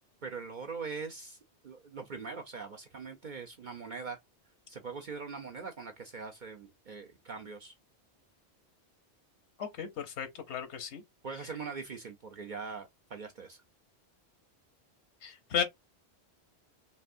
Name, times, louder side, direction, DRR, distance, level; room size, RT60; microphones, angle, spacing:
voice 1, 0.2-1.4 1.6-4.2 4.7-7.7 11.2-13.6, right 5 dB, 50° right, 0.7 m, -42 dB
voice 2, 9.6-11.0 15.2-15.6, left 7 dB, 80° left, 1.1 m, -34 dB
5.3 x 2.6 x 2.5 m
omnidirectional pair, 1.1 m